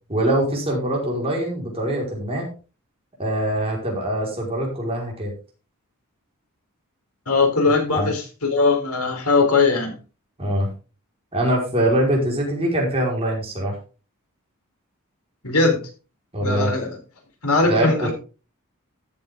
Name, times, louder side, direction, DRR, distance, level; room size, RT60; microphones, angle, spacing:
voice 1, 0.1-2.5 3.2-5.3 7.7-8.1 10.4-10.7 11.3-13.8 16.3-16.7 17.6-18.1, right 1 dB, 25° right, -2 dB, 5.1 m, -23 dB
voice 2, 7.3-10.0 15.4-15.8 16.4-17.0 17.4-18.1, left 3 dB, 85° left, 3 dB, 4.0 m, -20 dB
14.0 x 7.9 x 3.8 m, 0.34 s
head